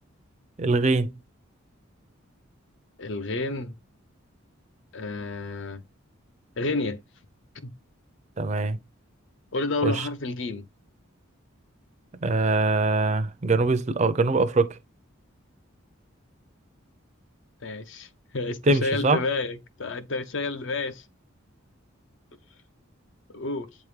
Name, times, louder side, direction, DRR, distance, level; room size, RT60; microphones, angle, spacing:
voice 1, 0.6-1.1 8.4-8.8 9.8-10.1 12.2-14.7 18.7-19.2, right 3 dB, 35° right, 0.5 m, -22 dB
voice 2, 3.0-3.7 4.9-5.8 6.6-7.0 7.6-7.7 9.5-10.7 17.6-21.0 23.3-23.7, left 3 dB, 60° left, 0.6 m, -30 dB
8.4 x 3.6 x 3.1 m
head